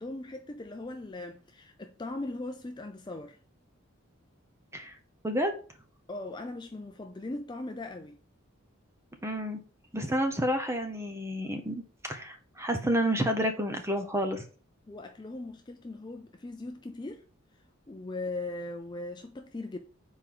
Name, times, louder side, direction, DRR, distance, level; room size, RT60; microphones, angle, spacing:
voice 1, 0.0-3.4 6.1-8.2 14.9-17.2 17.9-19.8, left 2 dB, 20° left, 0.4 m, -39 dB
voice 2, 9.2-9.6 9.9-14.4, equal, 15° right, 0.9 m, -30 dB
6.7 x 4.5 x 3.8 m
head